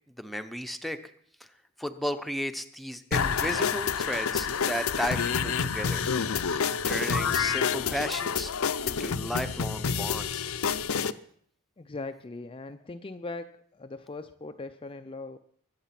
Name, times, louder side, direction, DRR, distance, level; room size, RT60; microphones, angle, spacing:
voice 1, 0.2-1.0 1.8-6.1 6.8-8.5 8.9-10.4, equal, ahead, 7 dB, 0.8 m, -34 dB
sound 1, 3.1-11.1, left 6 dB, 70° left, 0.6 m, -28 dB
voice 2, 11.8-15.4, left 3 dB, 25° left, 8 dB, 0.5 m, -40 dB
22.0 x 8.0 x 5.9 m, 0.64 s
head